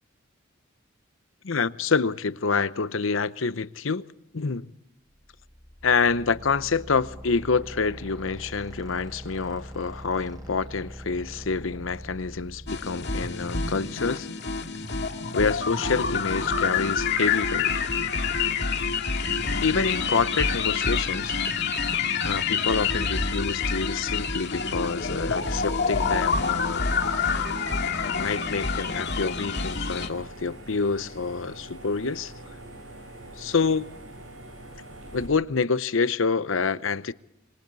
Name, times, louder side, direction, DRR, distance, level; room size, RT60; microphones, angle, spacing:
voice 1, 1.4-4.1 4.3-4.7 5.8-14.3 15.3-17.7 19.6-21.3 22.2-26.9 28.0-32.3 33.4-33.9 35.1-37.1, left 4 dB, 75° left, 0.8 m, -27 dB
sound 1, 5.1-14.0, equal, 20° right, 6.6 m, -43 dB
sound 2, 12.7-30.1, left 5 dB, 60° left, 2.1 m, -27 dB
sound 3, 25.4-35.3, right 1 dB, 85° right, 6.9 m, -44 dB
27.0 x 24.0 x 4.1 m
head